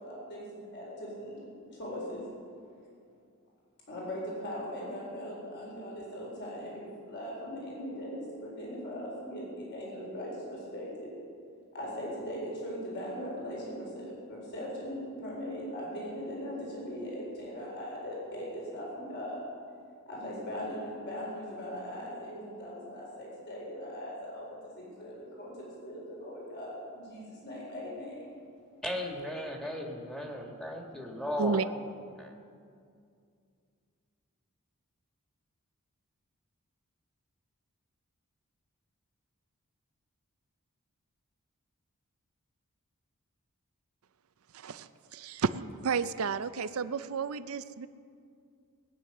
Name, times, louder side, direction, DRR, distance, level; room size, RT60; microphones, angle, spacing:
voice 1, 0.0-1.5 1.7-2.3 3.9-11.1 11.7-19.5 20.1-28.4, equal, 55° left, -4 dB, 4.3 m, -40 dB
voice 2, 28.8-31.7 32.2-32.3, left 1 dB, 5° left, 0 dB, 1.8 m, -36 dB
voice 3, 44.5-45.5 45.8-47.9, right 5 dB, 70° right, 13 dB, 0.5 m, -31 dB
19.0 x 9.5 x 6.7 m, 2.3 s
head